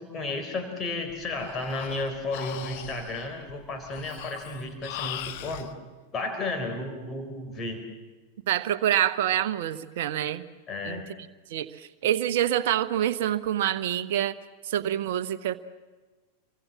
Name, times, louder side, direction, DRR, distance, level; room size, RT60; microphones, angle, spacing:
voice 1, 0.0-5.7 6.1-7.8 10.7-11.0, left 2 dB, 25° left, 5 dB, 4.3 m, -33 dB
Breathing, 1.1-5.7, left 13 dB, 50° left, 1.4 m, -40 dB
voice 2, 8.5-10.4 10.8-11.0 11.5-14.4 14.6-15.6, right 11 dB, 55° right, 12 dB, 1.1 m, -26 dB
27.5 x 24.0 x 7.4 m, 1.3 s
figure-of-eight pair, 90°, 0 cm